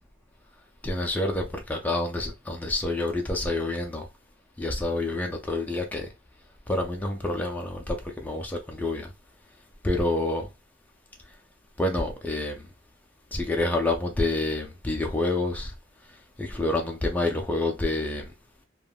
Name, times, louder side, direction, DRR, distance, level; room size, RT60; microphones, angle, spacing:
voice 1, 0.8-4.1 4.6-6.1 6.7-9.1 9.8-10.5 11.8-12.6 13.3-15.7 16.4-18.2, left 2 dB, 10° left, 0.4 m, -28 dB
3.4 x 2.2 x 2.2 m
head